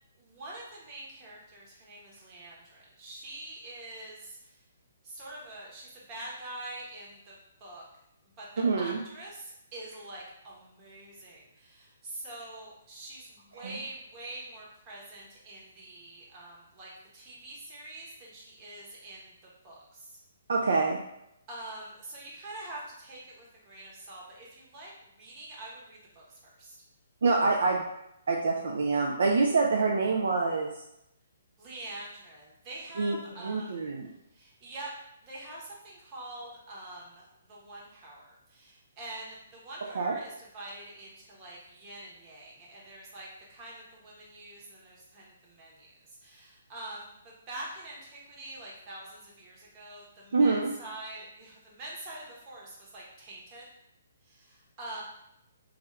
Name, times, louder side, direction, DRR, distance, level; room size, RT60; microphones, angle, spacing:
voice 1, 0.2-4.6 5.0-7.8 8.4-19.3 19.6-20.2 21.5-26.8 31.6-33.9 34.3-34.9 35.2-53.6 54.2-55.0, right 1 dB, 30° right, -4 dB, 1.0 m, -45 dB
voice 2, 8.6-9.0 13.6-13.7 20.5-21.0 27.2-27.8 28.3-30.7 33.0-34.1 40.0-40.2 50.3-50.7, right 3 dB, 65° right, 0 dB, 0.3 m, -26 dB
2.7 x 2.4 x 3.2 m, 0.81 s
figure-of-eight pair, 130°, 0 cm